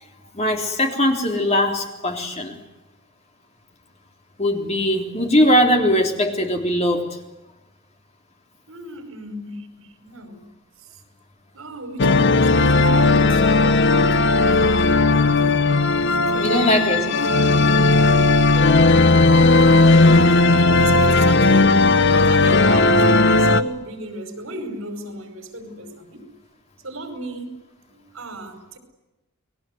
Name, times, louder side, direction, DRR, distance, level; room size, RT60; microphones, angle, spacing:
voice 1, 0.3-2.6 4.4-7.2 16.4-17.0, equal, 30° left, 3.6 m, -20 dB
voice 2, 8.7-10.4 10.8-11.0 11.5-14.2 16.6-16.9 18.5-18.7 19.7-26.3 26.8-27.6 27.9-28.8, right 2 dB, 75° right, 5.1 m, -34 dB
sound 1, 12.0-23.6, left 3 dB, 55° left, 1.0 m, -16 dB
30.0 x 21.0 x 8.0 m
head